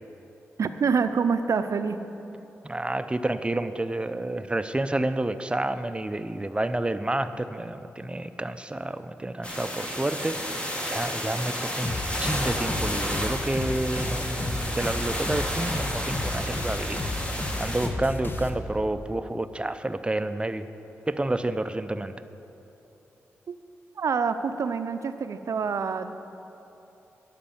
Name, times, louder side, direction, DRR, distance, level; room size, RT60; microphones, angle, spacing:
voice 1, 0.6-2.0 23.5-23.6 24.0-26.1, right 5 dB, 65° right, 10 dB, 0.5 m, -26 dB
voice 2, 2.6-17.0 17.3-20.7 21.1-22.2, right 1 dB, 20° right, 11 dB, 0.5 m, -29 dB
sound 1, 9.4-17.9, equal, 20° left, 1.6 m, -32 dB
sound 2, 11.8-19.0, left 2 dB, 40° left, 0.9 m, -33 dB
11.5 x 5.2 x 7.1 m, 2.9 s
supercardioid pair, 40°, 6 cm